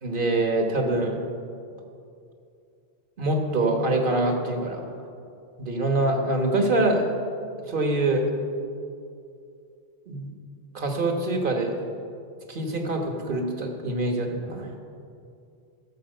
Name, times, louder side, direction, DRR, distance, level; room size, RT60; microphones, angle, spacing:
voice 1, 0.0-1.2 3.2-4.9 5.6-7.0 7.7-8.2 10.1-10.3 10.7-11.7 12.5-14.7, right 2 dB, 55° right, 3 dB, 1.5 m, -25 dB
14.0 x 7.4 x 5.5 m, 2.5 s
omnidirectional pair, 1.1 m